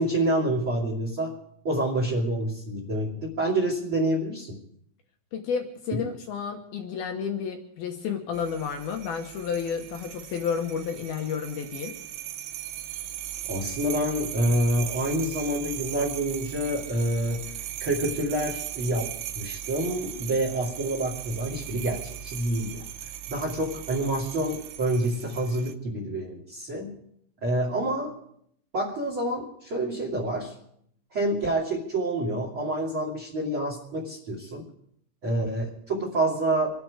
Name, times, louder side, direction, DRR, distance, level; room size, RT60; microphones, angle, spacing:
voice 1, 0.0-1.4 1.6-4.6 5.9-6.0 13.5-17.4 17.8-22.8 23.3-27.0 27.4-28.1 28.7-30.5 31.1-34.7 35.2-36.7, right 1 dB, 35° right, 0 dB, 2.4 m, -27 dB
voice 2, 5.3-12.0, left 6 dB, 75° left, 4 dB, 2.3 m, -31 dB
sound 1, 8.3-25.7, right 12 dB, 90° right, 3.5 m, -38 dB
27.5 x 10.0 x 4.9 m, 0.71 s
omnidirectional pair, 6.0 m